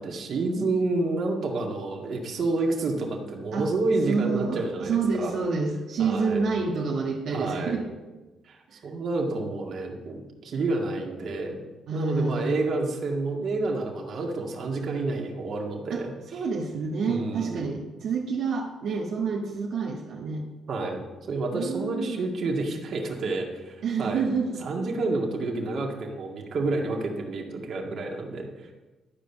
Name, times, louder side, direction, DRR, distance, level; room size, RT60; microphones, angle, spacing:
voice 1, 0.0-5.3 6.0-6.4 7.3-7.8 8.5-11.6 11.9-16.4 17.1-17.7 20.7-24.2 24.6-28.7, right 3 dB, 60° right, 1 dB, 2.0 m, -29 dB
voice 2, 4.1-7.9 11.9-12.6 15.9-16.0 16.3-20.4 21.5-22.3 23.8-24.6, right 4 dB, 75° right, -3 dB, 1.6 m, -28 dB
12.0 x 5.1 x 7.2 m, 1.2 s
cardioid pair, 90°, 0 cm